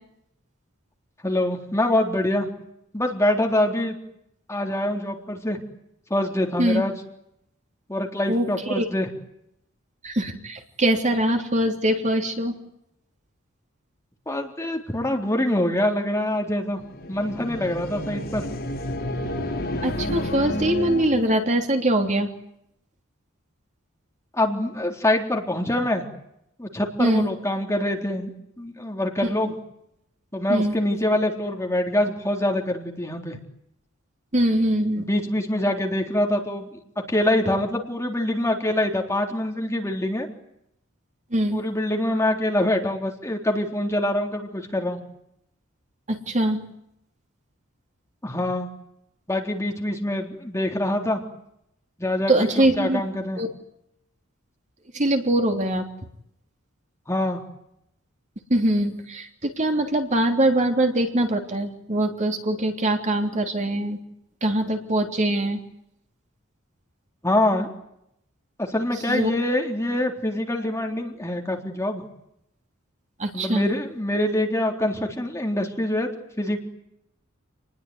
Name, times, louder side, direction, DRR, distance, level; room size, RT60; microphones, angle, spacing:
voice 1, 1.2-2.5 2.9-4.0 4.5-5.6 6.1-6.9 7.9-9.1 14.3-16.8 17.1-18.5 24.3-26.1 26.6-28.3 28.6-29.5 30.3-33.4 35.0-36.8 37.1-40.3 41.5-45.0 48.2-48.7 49.3-51.2 52.0-53.4 57.1-57.4 67.2-67.7 68.6-72.0 73.3-76.1 76.4-76.6, left 1 dB, 15° left, 2 dB, 3.7 m, -25 dB
voice 2, 8.3-8.8 10.0-12.6 19.8-22.3 27.0-27.3 29.2-29.5 30.5-30.8 34.3-35.1 41.3-41.6 46.1-46.6 52.3-53.0 53.4-53.5 54.9-55.9 58.5-64.0 64.4-65.6 69.1-69.3 73.2-73.7, right 1 dB, 35° right, 4 dB, 3.3 m, -23 dB
sound 1, 16.8-21.4, left 1 dB, 50° left, 6.6 m, -30 dB
29.5 x 20.5 x 9.6 m, 0.78 s
head